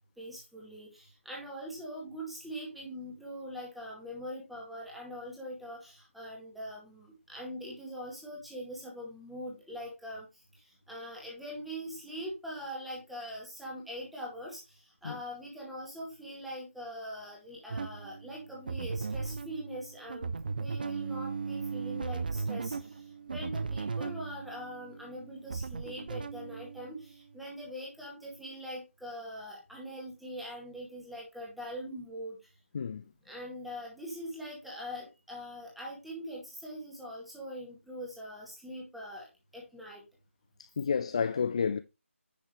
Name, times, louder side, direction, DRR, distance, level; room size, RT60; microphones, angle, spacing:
voice 1, 0.2-10.3 10.9-14.6 15.0-20.3 20.6-22.8 23.3-32.4 33.3-39.3 39.5-40.0, equal, ahead, 2.0 m, -42 dB
sound 1, 17.7-27.2, right 4 dB, 40° right, 0.6 m, -37 dB
voice 2, 40.6-41.8, left 6 dB, 25° left, 0.3 m, -30 dB
9.5 x 6.0 x 3.2 m
figure-of-eight pair, 160°, 7 cm